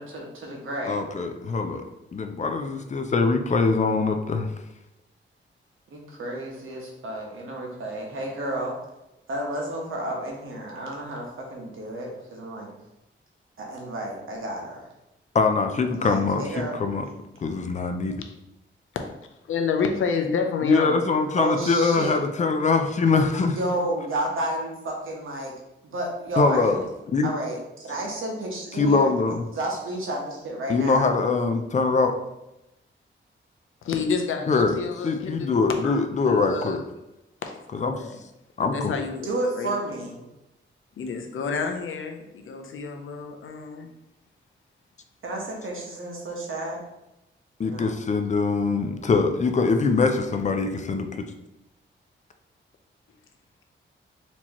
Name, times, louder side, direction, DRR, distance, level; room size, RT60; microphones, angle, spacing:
voice 1, 0.0-1.0 5.9-8.7 9.3-12.7 13.6-14.9 15.9-16.7 21.3-22.2 23.5-25.5 25.8-26.8 27.2-29.1 29.5-31.1 39.2-40.2 45.2-46.8 47.6-48.0, right 1 dB, 80° right, -1 dB, 1.1 m, -31 dB
voice 2, 0.9-1.8 2.1-4.5 15.3-17.0 17.4-18.1 20.6-23.6 26.4-26.8 27.1-27.3 28.8-29.4 30.7-32.1 34.5-34.7 35.0-36.8 37.7-38.0 38.6-38.9 47.6-51.3, left 4 dB, 35° left, 6 dB, 0.4 m, -23 dB
voice 3, 19.5-21.0 33.8-35.5 35.8-36.8 37.4-38.2 38.6-39.7 41.0-43.9, left 5 dB, 80° left, 4 dB, 0.6 m, -29 dB
4.4 x 2.9 x 2.9 m, 0.92 s
wide cardioid pair, 160°, 21 cm